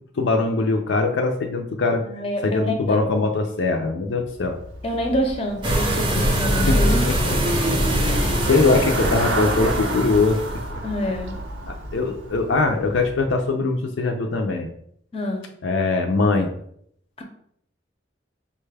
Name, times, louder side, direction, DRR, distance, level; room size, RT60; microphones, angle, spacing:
voice 1, 0.2-2.0 2.4-4.6 6.2-6.4 6.7-7.4 7.7-10.4 10.7-10.8 11.7-14.7 15.6-16.5, left 3 dB, 75° left, 4 dB, 0.5 m, -22 dB
voice 2, 2.0-3.0 4.8-7.1 10.8-11.4 15.1-15.5 17.2-17.3, equal, 30° left, 2 dB, 0.6 m, -27 dB
Traffic noise roadway noise / Bicycle, 4.2-13.4, right 2 dB, 90° right, 0.6 m, -31 dB
sound 1, 5.6-10.6, equal, 25° right, 0.6 m, -22 dB
5.2 x 2.2 x 3.3 m, 0.68 s
head